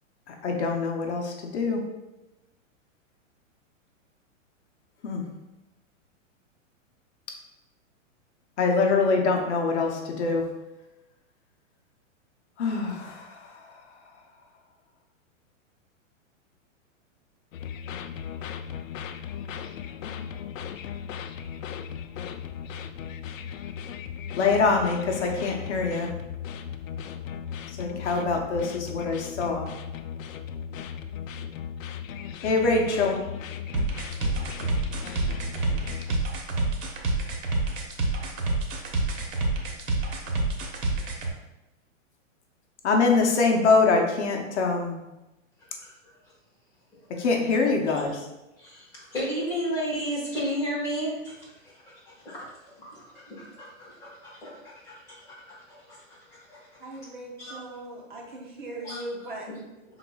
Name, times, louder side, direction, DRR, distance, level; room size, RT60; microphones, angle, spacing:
voice 1, 0.3-1.9 5.0-5.2 8.6-10.5 12.6-13.8 24.3-26.1 27.7-29.7 32.4-33.3 42.8-45.0 47.1-48.3, left 4 dB, 60° left, 2 dB, 0.8 m, -24 dB
sound 1, 17.5-36.2, left 8 dB, 85° left, 0.5 m, -37 dB
sound 2, 33.7-41.3, right 2 dB, 90° right, 1.1 m, -27 dB
voice 2, 48.6-57.0 57.4-57.6 58.8-59.0 59.5-59.6, equal, 10° left, -10 dB, 1.4 m, -34 dB
voice 3, 56.8-59.5, right 1 dB, 40° right, 0 dB, 0.6 m, -39 dB
5.8 x 3.9 x 2.3 m, 0.98 s
hypercardioid pair, 175°, 39 cm